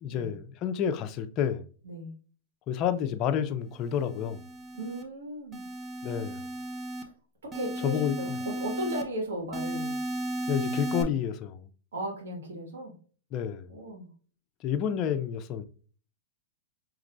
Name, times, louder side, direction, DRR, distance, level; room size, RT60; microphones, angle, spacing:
voice 1, 0.0-1.7 2.7-4.4 6.0-6.4 7.8-8.2 10.5-11.7 13.3-13.7 14.6-15.6, left 8 dB, 35° left, 0.5 m, -29 dB
sound 1, 3.9-5.0 5.5-7.0 7.5-9.0 9.5-11.0, right 1 dB, 20° right, 0.7 m, -35 dB
voice 2, 4.7-5.6 7.4-10.0 11.9-12.9 13.7-14.1, right 1 dB, 90° right, 1.6 m, -36 dB
4.9 x 3.0 x 2.6 m
hypercardioid pair, 140°, 0 cm